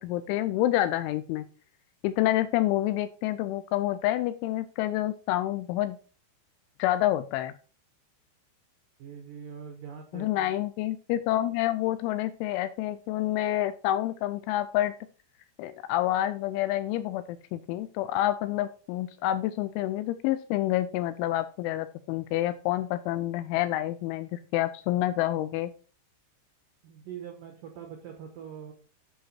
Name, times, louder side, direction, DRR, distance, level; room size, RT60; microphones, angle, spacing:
voice 1, 0.0-1.5 2.0-6.0 6.8-7.5 10.1-14.9 15.6-25.7, left 14 dB, 85° left, 12 dB, 2.7 m, -28 dB
voice 2, 9.0-10.5 26.8-28.7, right 8 dB, 85° right, 3 dB, 1.9 m, -43 dB
10.0 x 4.7 x 4.2 m, 0.38 s
omnidirectional pair, 5.8 m